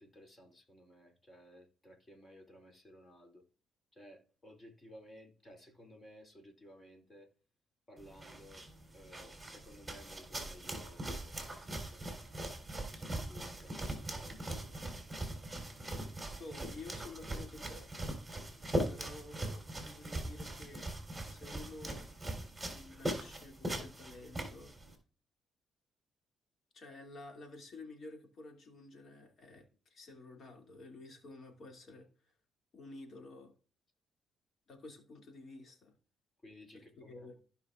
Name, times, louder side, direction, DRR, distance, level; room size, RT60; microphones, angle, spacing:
voice 1, 0.0-3.4 3.9-7.3 7.9-8.7 8.9-12.5 12.9-14.9 36.4-37.3, equal, 30° left, 2.6 m, -57 dB
sound 1, 8.0-24.9, right 1 dB, 10° right, 3.5 m, -41 dB
voice 2, 16.4-17.9 18.9-20.9 21.3-22.0 22.6-24.8 26.7-32.1 32.7-33.5 34.7-35.9 36.7-37.3, left 2 dB, 55° left, 2.4 m, -51 dB
15.5 x 5.6 x 2.4 m
cardioid pair, 90°, 0 cm